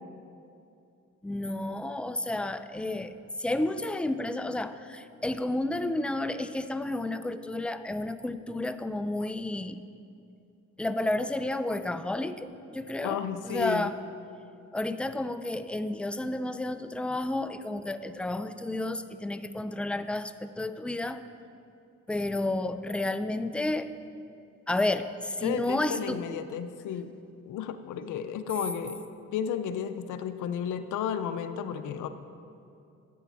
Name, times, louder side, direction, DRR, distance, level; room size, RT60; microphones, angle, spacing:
voice 1, 1.2-9.8 10.8-14.0 14.7-21.2 22.1-23.9 24.7-26.2, left 2 dB, 5° left, 11 dB, 0.5 m, -31 dB
voice 2, 13.0-13.9 25.4-27.1 27.5-29.0 29.3-32.1, left 8 dB, 90° left, 9 dB, 0.6 m, -33 dB
10.5 x 8.2 x 6.1 m, 2.6 s
cardioid pair, 70°, 30 cm